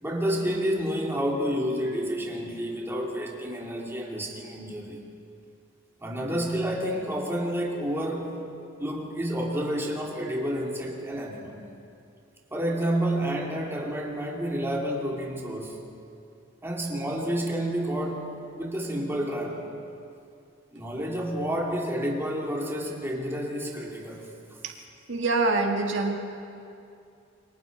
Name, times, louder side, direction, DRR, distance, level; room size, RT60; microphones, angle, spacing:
voice 1, 0.0-5.0 6.0-8.3 8.8-11.6 12.5-15.8 16.6-19.7 20.7-24.3, equal, 15° right, -2 dB, 2.5 m, -29 dB
voice 2, 25.1-26.1, right 3 dB, 80° right, 1 dB, 1.9 m, -25 dB
28.5 x 23.5 x 4.1 m, 2.6 s
head